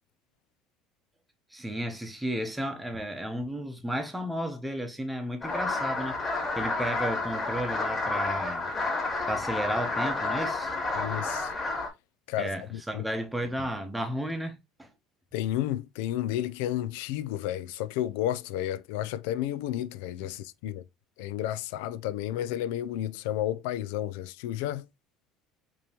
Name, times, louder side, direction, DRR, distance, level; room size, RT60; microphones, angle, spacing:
voice 1, 1.5-6.2 6.6-8.7 9.3-10.8 12.4-14.9, equal, 5° right, 0.8 m, -33 dB
sound 1, 5.4-11.9, left 3 dB, 20° left, 1.8 m, -30 dB
voice 2, 10.9-11.5 12.3-13.0 15.3-20.8 21.2-24.9, left 12 dB, 90° left, 0.4 m, -32 dB
5.1 x 3.0 x 2.9 m
cardioid pair, 145°, 0 cm